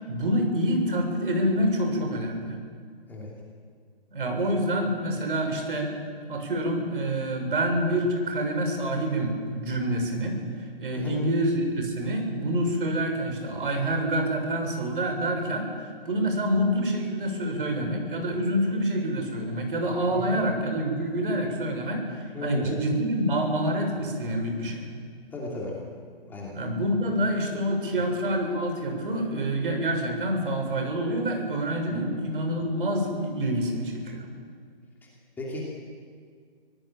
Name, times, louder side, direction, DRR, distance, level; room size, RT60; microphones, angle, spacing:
voice 1, 0.0-2.6 4.1-5.9 6.3-15.7 16.1-24.9 26.5-34.3, right 1 dB, 60° right, 3 dB, 7.1 m, -27 dB
voice 2, 20.1-20.4 22.3-22.8 25.3-25.7 26.3-26.5 31.9-32.1 35.0-35.1 35.4-35.6, left 2 dB, 5° left, -4 dB, 2.8 m, -35 dB
26.5 x 17.5 x 9.0 m, 2.1 s
hypercardioid pair, 160°, 31 cm